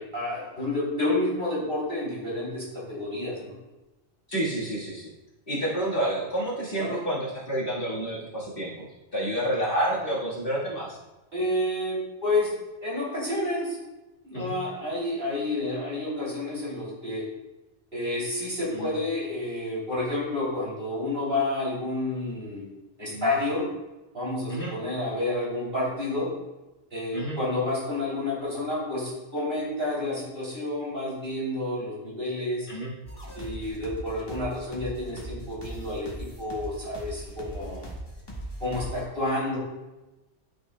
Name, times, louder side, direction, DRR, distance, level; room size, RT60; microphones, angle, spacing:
voice 1, 0.0-3.5 6.8-7.0 11.3-12.5 12.8-13.8 14.2-17.2 17.9-22.6 23.0-23.6 24.1-26.3 26.9-32.7 33.3-36.1 36.4-37.9 38.6-39.6, left 2 dB, 55° right, -6 dB, 3.3 m, -29 dB
voice 2, 4.3-5.1 5.5-8.7 9.1-11.0 14.3-14.6 18.7-18.9 23.1-23.3 24.5-24.7 27.1-27.4 32.7-32.9, right 1 dB, 50° left, -6 dB, 1.9 m, -29 dB
sound 1, 33.1-39.0, right 1 dB, 20° left, 1.6 m, -39 dB
12.0 x 6.3 x 2.2 m, 1.1 s
omnidirectional pair, 1.2 m